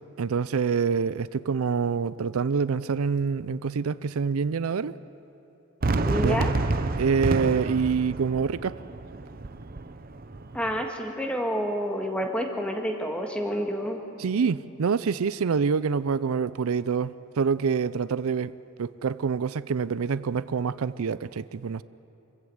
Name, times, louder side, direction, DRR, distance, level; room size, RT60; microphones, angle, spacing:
voice 1, 0.2-4.9 6.2-6.4 7.0-8.8 14.2-18.5 18.8-21.8, right 5 dB, 85° right, 16 dB, 0.5 m, -26 dB
Fireworks, 5.8-10.9, right 2 dB, 45° right, 0.7 m, -29 dB
voice 2, 6.0-6.5 10.5-14.0, equal, 5° left, 2 dB, 1.7 m, -29 dB
25.0 x 15.5 x 7.9 m, 3.0 s
head